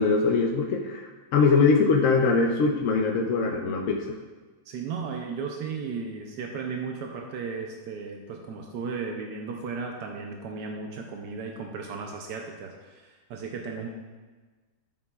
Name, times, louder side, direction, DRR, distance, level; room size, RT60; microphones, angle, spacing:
voice 1, 0.0-4.1, left 4 dB, 60° left, 0 dB, 0.9 m, -22 dB
voice 2, 4.7-13.9, right 5 dB, 85° right, 2 dB, 1.3 m, -35 dB
9.7 x 8.5 x 2.3 m, 1.3 s
omnidirectional pair, 1.8 m